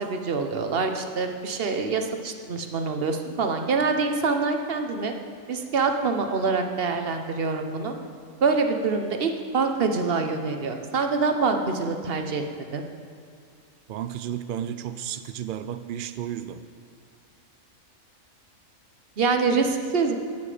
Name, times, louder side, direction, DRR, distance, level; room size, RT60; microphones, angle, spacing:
voice 1, 0.0-5.1 5.5-7.9 8.4-12.4 12.7-12.8 19.2-20.2, right 4 dB, 50° right, 5 dB, 1.0 m, -25 dB
voice 2, 13.9-16.6, right 10 dB, 75° right, 11 dB, 0.4 m, -33 dB
17.5 x 7.1 x 5.0 m, 2.3 s
omnidirectional pair, 1.4 m